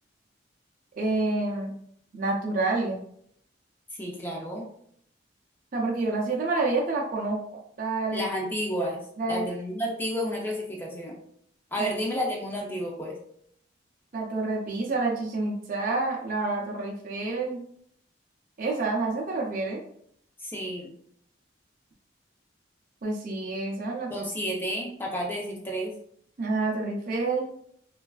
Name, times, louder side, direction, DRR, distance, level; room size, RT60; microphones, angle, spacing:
voice 1, 1.0-1.7 2.1-3.0 5.7-7.4 7.8-8.3 9.2-9.5 11.8-11.9 14.1-17.6 18.6-19.8 23.0-24.3 26.4-27.5, right 3 dB, 45° right, -1 dB, 0.5 m, -28 dB
voice 2, 3.9-4.7 8.1-9.0 9.3-11.1 11.7-13.2 20.4-20.9 24.1-25.9, equal, 10° left, -1 dB, 0.5 m, -31 dB
3.3 x 2.3 x 2.3 m, 0.68 s
head